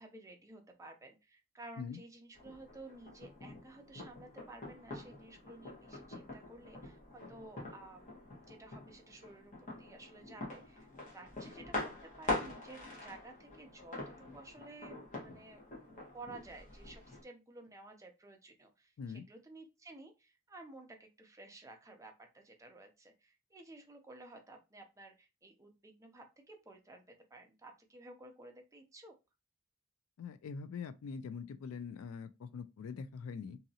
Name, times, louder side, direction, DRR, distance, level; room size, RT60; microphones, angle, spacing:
voice 1, 0.0-18.9 19.3-29.1, right 2 dB, 15° right, 0.5 m, -54 dB
sound 1, 2.3-17.2, left 2 dB, 40° left, 1.2 m, -44 dB
voice 2, 30.2-33.6, left 5 dB, 75° left, 0.3 m, -43 dB
2.8 x 2.7 x 2.7 m
head